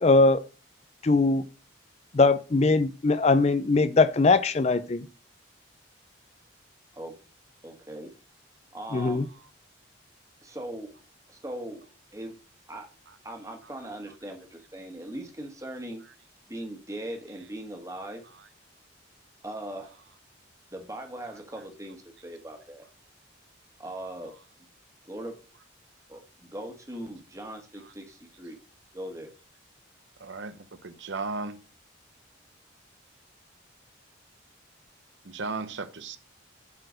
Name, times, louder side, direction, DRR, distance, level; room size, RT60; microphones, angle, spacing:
voice 1, 0.0-0.4 1.0-1.4 2.1-5.0 8.9-9.3, left 3 dB, 35° left, 14 dB, 0.4 m, -21 dB
voice 2, 7.6-8.1 8.7-9.2 10.4-10.9 11.3-11.8 12.1-12.3 12.7-12.9 13.2-16.0 16.5-18.2 19.4-20.0 20.7-22.8 23.8-24.3 25.1-25.3 26.1-28.6 28.9-29.3, right 1 dB, 15° right, 3 dB, 1.6 m, -39 dB
voice 3, 30.2-31.6 35.2-36.2, right 3 dB, 65° right, 12 dB, 0.8 m, -35 dB
8.3 x 4.5 x 6.3 m, 0.34 s
head